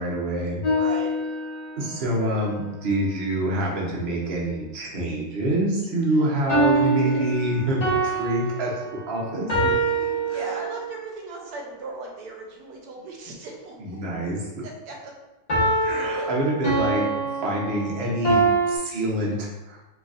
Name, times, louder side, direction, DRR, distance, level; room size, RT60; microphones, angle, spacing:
voice 1, 0.0-0.9 1.8-9.7 10.3-10.4 13.8-14.4 15.8-19.8, right 1 dB, 50° right, -3 dB, 0.9 m, -26 dB
sound 1, 0.6-2.0 6.5-11.0 15.5-18.8, right 2 dB, 30° left, 0.9 m, -25 dB
voice 2, 0.8-1.4 6.1-6.3 6.7-7.3 9.7-14.0 14.6-15.1 15.6-16.3, right 2 dB, 75° right, 0 dB, 1.2 m, -38 dB
3.9 x 3.1 x 2.4 m, 1.0 s
omnidirectional pair, 1.7 m